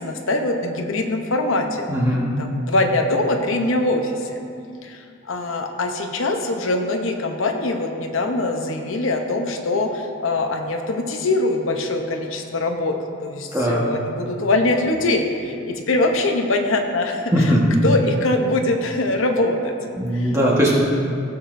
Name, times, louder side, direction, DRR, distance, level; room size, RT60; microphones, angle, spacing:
voice 1, 0.0-1.9 2.4-4.4 4.8-19.8 20.1-20.4, left 2 dB, 80° left, 4 dB, 0.8 m, -23 dB
voice 2, 1.9-2.3 13.5-13.8 17.3-17.6 20.0-20.7, equal, 15° right, -5 dB, 1.4 m, -19 dB
15.5 x 7.1 x 2.6 m, 2.4 s
head